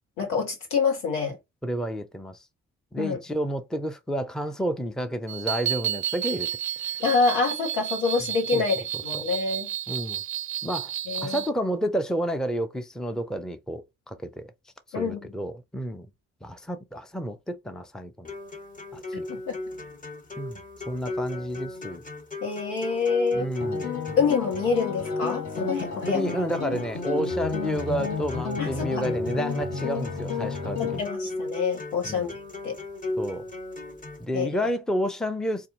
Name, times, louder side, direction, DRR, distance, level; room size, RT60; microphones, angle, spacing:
voice 1, 0.2-1.4 3.0-3.2 7.0-8.8 9.0-9.7 11.1-11.4 14.9-15.2 19.3-19.6 22.4-23.5 24.2-26.2 28.6-28.9 30.8-32.3 32.6-32.7 34.3-34.5, left 5 dB, 75° left, 1.4 m, -26 dB
voice 2, 1.6-2.4 2.9-6.5 6.8-6.9 8.5-8.6 9.1-9.3 9.9-10.2 10.6-10.9 11.2-14.5 15.0-16.1 16.4-18.3 18.9-19.2 20.4-20.6 20.9-22.0 23.3-23.9 26.1-31.1 32.0-32.3 33.2-33.4 34.2-35.7, equal, ahead, 0.7 m, -30 dB
sound 1, 5.3-11.5, right 11 dB, 45° right, 0.5 m, -31 dB
sound 2, 18.2-34.2, left 2 dB, 20° left, 1.3 m, -36 dB
sound 3, 23.6-31.0, left 6 dB, 40° left, 1.5 m, -32 dB
4.2 x 2.6 x 3.9 m
figure-of-eight pair, 40°, 41 cm